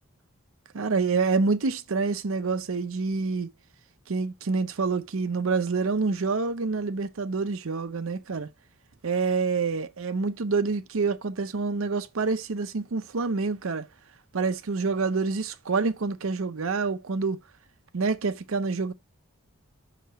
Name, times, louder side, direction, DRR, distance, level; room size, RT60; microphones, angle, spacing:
voice 1, 0.7-3.5 4.1-8.5 9.0-13.9 14.3-17.4 17.9-18.9, right 4 dB, 75° right, 0.6 m, -27 dB
5.7 x 3.1 x 5.5 m
head